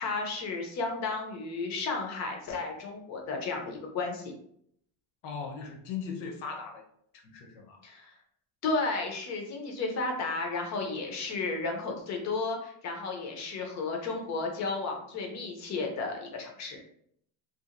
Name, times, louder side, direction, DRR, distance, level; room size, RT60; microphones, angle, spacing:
voice 1, 0.0-4.3 7.8-8.1 8.6-16.8, left 3 dB, 35° left, 2 dB, 0.5 m, -33 dB
voice 2, 5.2-6.8 7.1-7.8, left 6 dB, 65° left, 3 dB, 0.7 m, -39 dB
2.8 x 2.4 x 2.4 m, 0.69 s
cardioid pair, 165°, 47 cm